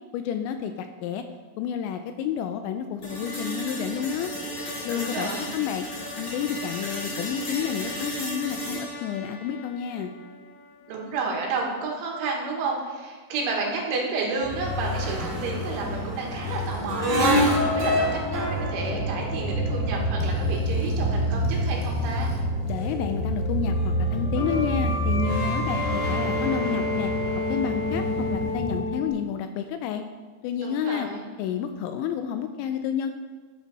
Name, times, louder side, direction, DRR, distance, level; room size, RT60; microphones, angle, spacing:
voice 1, 0.1-1.3 1.6-4.3 4.9-5.9 6.2-10.1 22.7-27.1 27.5-30.0 30.4-31.1 31.4-33.1, left 9 dB, 85° left, 8 dB, 2.7 m, -30 dB
sound 1, 3.0-11.0, equal, 30° left, 2.8 m, -35 dB
voice 2, 4.9-5.5 10.9-22.3 30.6-31.3, right 3 dB, 80° right, -1 dB, 3.9 m, -31 dB
sound 2, 14.4-28.8, equal, 45° right, 1.5 m, -27 dB
sound 3, 15.2-22.4 22.7-29.1, left 2 dB, 65° left, 3.0 m, -33 dB
13.0 x 7.4 x 4.1 m, 1.4 s
omnidirectional pair, 5.6 m